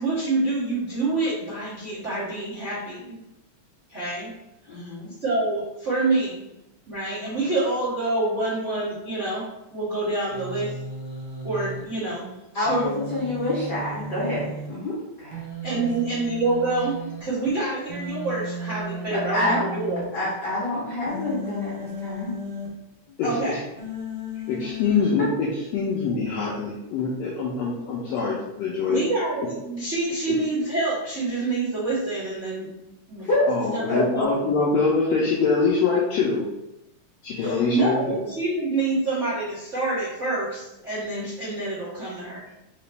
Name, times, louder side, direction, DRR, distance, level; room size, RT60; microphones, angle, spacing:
voice 1, 0.0-3.2 3.9-4.3 4.7-4.9 5.2-6.5 6.9-9.4 9.7-10.7 11.4-13.0 15.6-20.1 23.2-23.6 28.8-32.7 33.1-33.3 33.7-34.8 37.3-42.4, right 2 dB, 80° right, -10 dB, 0.6 m, -27 dB
voice 2, 4.7-5.1 12.5-15.4 15.7-15.8 19.1-19.6 20.1-22.4 25.2-25.3 33.2-33.5 33.9-34.0, left 1 dB, 60° left, -9 dB, 1.1 m, -27 dB
Human voice, 10.3-11.8 12.7-14.7 15.3-17.2 17.9-20.0 21.1-22.7 23.8-25.0, equal, 65° right, 1.5 m, -35 dB
voice 3, 23.2-23.6 24.5-29.0 33.5-36.4 37.2-38.2, left 4 dB, 80° left, -3 dB, 1.5 m, -24 dB
4.7 x 2.9 x 3.3 m, 0.90 s
omnidirectional pair, 3.6 m